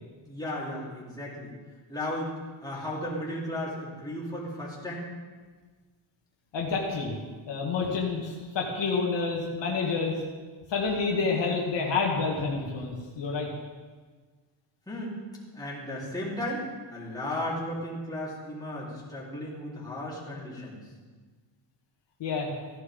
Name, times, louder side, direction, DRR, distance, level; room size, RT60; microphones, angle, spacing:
voice 1, 0.3-1.5 1.9-2.3 2.6-5.1 14.9-15.2 15.5-16.6 16.9-20.8, left 1 dB, 10° left, -7 dB, 3.8 m, -35 dB
voice 2, 6.5-7.2 7.5-10.1 10.7-13.5 22.2-22.5, left 4 dB, 60° left, -2 dB, 2.0 m, -28 dB
15.5 x 11.0 x 3.8 m, 1.4 s
cardioid pair, 130°, 48 cm